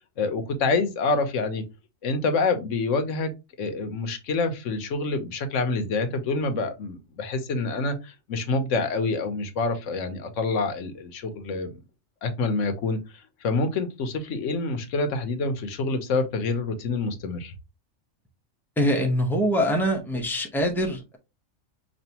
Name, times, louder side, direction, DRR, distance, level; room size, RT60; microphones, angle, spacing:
voice 1, 0.2-1.6 2.0-3.3 3.6-11.7 12.2-13.0 13.4-17.5, left 3 dB, 75° left, 7 dB, 1.1 m, -27 dB
voice 2, 18.8-21.2, equal, ahead, 1 dB, 0.7 m, -24 dB
5.2 x 2.5 x 2.8 m, 0.25 s
omnidirectional pair, 1.3 m